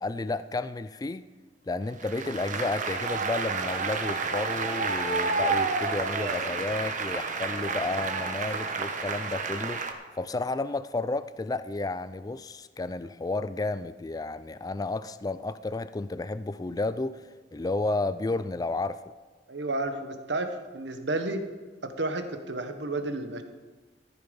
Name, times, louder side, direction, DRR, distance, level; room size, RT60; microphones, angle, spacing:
voice 1, 0.0-1.3 1.7-9.8 10.2-17.2 17.5-19.0, left 2 dB, 20° left, 14 dB, 0.4 m, -32 dB
Applause, 2.0-9.9, right 4 dB, 45° right, 1.2 m, -30 dB
voice 2, 19.5-21.4 21.8-23.4, right 2 dB, 80° right, 8 dB, 1.3 m, -31 dB
14.5 x 10.0 x 5.3 m, 1.4 s
head